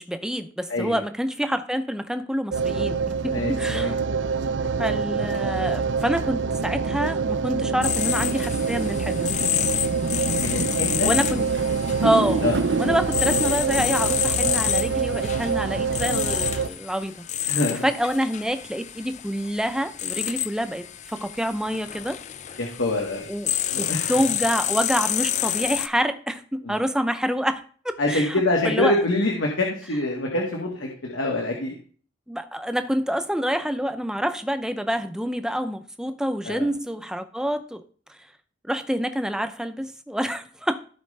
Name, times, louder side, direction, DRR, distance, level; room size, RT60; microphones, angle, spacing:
voice 1, 0.0-3.0 3.2-4.0 4.8-9.3 11.0-11.5 12.0-12.5 12.8-17.3 17.7-22.2 23.3-28.4 28.6-29.0 32.3-37.8 38.1-38.2 38.6-40.8, equal, 5° right, 0.6 m, -27 dB
voice 2, 0.7-1.0 3.3-4.0 10.3-11.1 12.4-12.6 17.5-17.9 22.6-23.3 23.7-24.0 26.6-26.8 28.0-31.7 36.4-36.7, left 2 dB, 85° left, 1.9 m, -25 dB
sound 1, 2.5-16.7, right 5 dB, 70° right, 0.5 m, -25 dB
sound 2, 7.8-25.9, left 11 dB, 40° left, 0.4 m, -29 dB
15.5 x 5.2 x 3.3 m
head